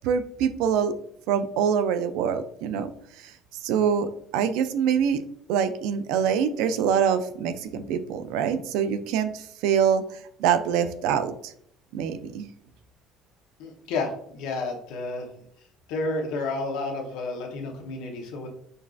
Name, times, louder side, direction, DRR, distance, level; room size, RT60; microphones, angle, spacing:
voice 1, 0.0-0.9 1.3-2.9 3.2-3.3 3.6-5.2 5.5-10.0 10.4-11.5 11.9-12.5, right 8 dB, 80° right, 11 dB, 0.4 m, -25 dB
voice 2, 13.6-15.4 15.9-18.5, left 3 dB, 85° left, 2 dB, 0.9 m, -31 dB
5.2 x 2.5 x 2.4 m, 0.67 s
cardioid pair, 130°, 0 cm